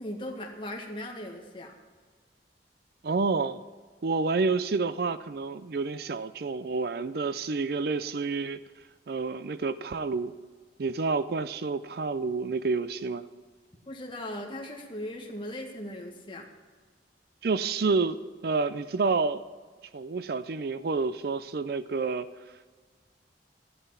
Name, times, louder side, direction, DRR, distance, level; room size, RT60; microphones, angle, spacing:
voice 1, 0.0-1.7 13.9-16.4, left 1 dB, 25° left, 1.7 m, -38 dB
voice 2, 3.0-3.6 4.0-8.6 9.1-10.4 10.8-13.3 17.4-18.2 18.4-19.4 19.9-22.3, right 4 dB, 55° right, 0.4 m, -29 dB
13.0 x 11.0 x 5.8 m
head